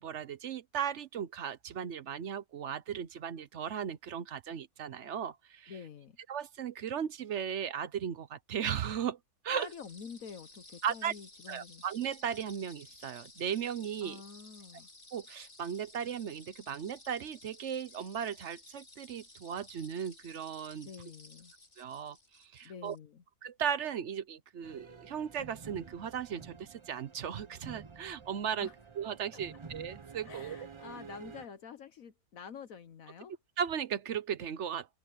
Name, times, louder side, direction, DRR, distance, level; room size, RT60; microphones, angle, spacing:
voice 1, 0.0-5.7 6.3-9.2 9.4-9.7 10.8-11.1 11.5-14.2 15.1-20.9 21.8-23.0 23.4-28.7 29.0-30.6 33.6-34.9, right 8 dB, 55° right, 1.0 m, -36 dB
voice 2, 5.7-6.2 9.5-11.8 14.0-14.9 20.8-21.5 22.6-23.2 28.6-28.7 29.3-29.4 30.2-33.3, left 6 dB, 65° left, 1.4 m, -48 dB
sound 1, 9.6-23.0, left 2 dB, 35° left, 3.1 m, -56 dB
sound 2, 24.6-31.5, right 5 dB, 30° right, 0.6 m, -50 dB
omnidirectional pair, 1.6 m